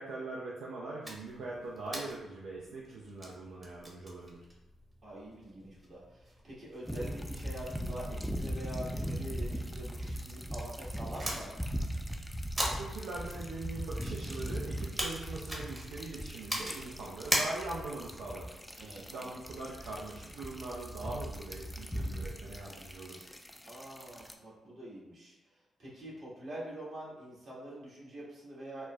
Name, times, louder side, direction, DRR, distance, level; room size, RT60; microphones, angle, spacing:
voice 1, 0.0-4.4 12.5-23.3, right 2 dB, 75° right, -4 dB, 0.4 m, -42 dB
sound 1, 1.0-18.0, right 1 dB, 25° right, 0.9 m, -42 dB
voice 2, 5.0-11.6 18.8-19.3 23.7-28.9, right 1 dB, 60° right, -7 dB, 1.4 m, -45 dB
sound 2, 6.9-24.3, equal, 5° left, 0.4 m, -40 dB
4.1 x 2.1 x 2.3 m, 1.0 s
hypercardioid pair, 45°, 0 cm